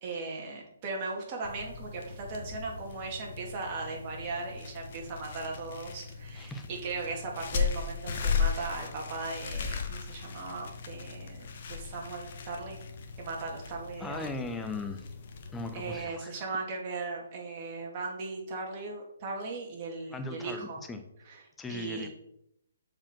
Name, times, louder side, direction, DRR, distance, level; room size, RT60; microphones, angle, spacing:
voice 1, 0.0-12.8 13.2-14.3 15.7-20.8 21.3-21.4 21.7-22.1, right 3 dB, 35° right, -1 dB, 2.8 m, -38 dB
Snapping Rubber Gloves, 1.4-16.0, left 6 dB, 50° left, 1.4 m, -37 dB
voice 2, 6.3-6.7 14.0-15.0 15.5-16.3 20.1-21.0 21.6-22.1, left 3 dB, 10° left, 7 dB, 1.0 m, -38 dB
7.1 x 5.2 x 6.0 m, 0.78 s
figure-of-eight pair, 140°, 0 cm